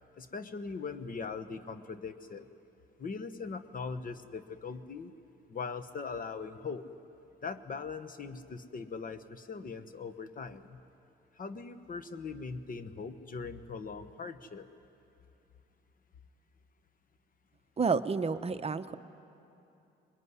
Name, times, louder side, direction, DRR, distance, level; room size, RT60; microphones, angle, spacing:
voice 1, 0.1-2.5 3.0-5.1 5.5-6.8 7.4-10.8 11.3-14.7, left 4 dB, 45° left, 10 dB, 1.3 m, -40 dB
voice 2, 17.8-19.0, right 5 dB, 30° right, 10 dB, 0.8 m, -30 dB
22.0 x 21.5 x 9.8 m, 2.8 s
cardioid pair, 90°, 20 cm